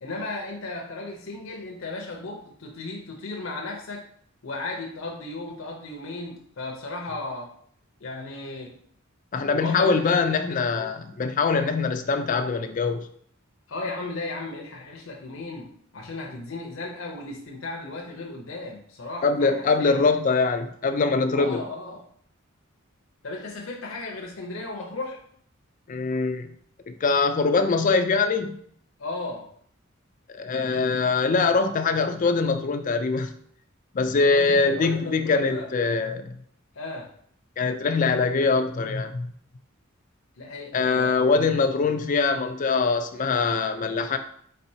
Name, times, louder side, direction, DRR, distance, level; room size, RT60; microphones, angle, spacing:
voice 1, 0.0-4.0 4.4-7.5 8.0-8.8 9.5-10.6 13.7-20.1 21.3-22.0 23.2-25.2 29.0-29.5 34.2-35.7 36.7-37.1 40.4-41.3, left 2 dB, 70° left, 0 dB, 0.7 m, -35 dB
voice 2, 9.3-13.1 19.2-21.6 25.9-26.5 26.9-28.6 30.3-33.3 33.9-36.4 37.6-39.3 40.7-44.2, left 4 dB, 40° left, 8 dB, 0.4 m, -23 dB
4.3 x 4.0 x 2.7 m, 0.62 s
head